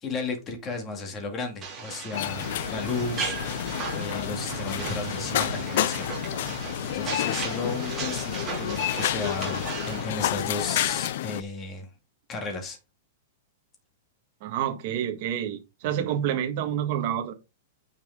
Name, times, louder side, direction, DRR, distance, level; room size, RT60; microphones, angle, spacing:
voice 1, 0.0-3.6 3.9-6.1 6.9-11.9 12.3-12.8, left 4 dB, 15° left, 2.2 m, -34 dB
sound 1, 1.6-10.1, right 5 dB, 15° right, 3.4 m, -37 dB
sound 2, 2.1-11.4, left 12 dB, 50° left, 0.4 m, -30 dB
sound 3, 2.2-11.2, right 4 dB, 80° right, 2.0 m, -41 dB
voice 2, 14.4-17.3, right 10 dB, 35° right, 1.7 m, -28 dB
9.3 x 5.2 x 3.7 m
supercardioid pair, 180°, 0 cm